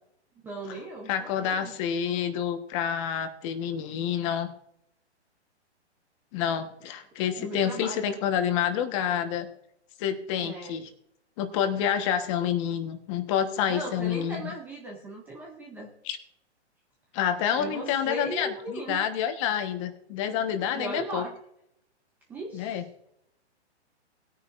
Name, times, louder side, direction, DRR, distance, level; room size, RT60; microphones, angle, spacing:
voice 1, 0.4-1.7 7.4-8.2 10.4-10.8 13.7-15.9 17.6-19.0 20.7-21.4 22.3-22.8, right 2 dB, 5° right, -1 dB, 0.5 m, -37 dB
voice 2, 1.1-4.5 6.3-9.5 10.0-10.9 11.4-14.4 16.0-16.2 17.1-21.2 22.5-22.8, left 9 dB, 25° left, 8 dB, 1.2 m, -28 dB
19.5 x 9.9 x 2.5 m, 0.76 s
hypercardioid pair, 155°, 34 cm